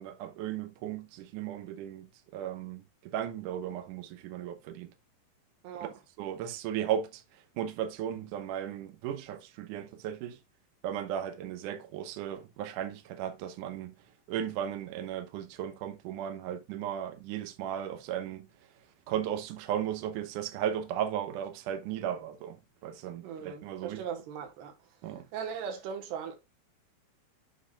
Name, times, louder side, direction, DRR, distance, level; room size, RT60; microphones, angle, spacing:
voice 1, 0.0-2.1 2.3-4.9 6.2-7.2 7.6-10.4 10.8-13.9 14.3-18.5 19.1-22.6 22.8-24.0 25.0-25.3, right 10 dB, 70° right, 2.1 m, -35 dB
voice 2, 23.2-24.7 25.3-26.4, right 7 dB, 85° right, 3.4 m, -38 dB
7.3 x 6.9 x 2.4 m
omnidirectional pair, 4.6 m